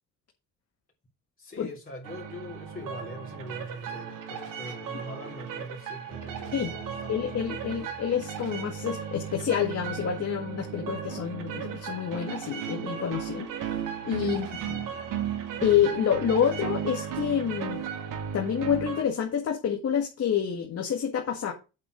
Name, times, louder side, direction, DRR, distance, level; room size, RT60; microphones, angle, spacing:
voice 1, 1.4-7.4 14.2-14.4, equal, 25° left, 3.5 m, -42 dB
sound 1, 2.0-19.0, right 8 dB, 65° right, 2.4 m, -35 dB
voice 2, 7.1-13.8 14.0-14.8 15.6-17.8 18.3-21.5, left 8 dB, 45° left, 1.8 m, -28 dB
8.0 x 5.8 x 6.3 m
cardioid pair, 100°, 34 cm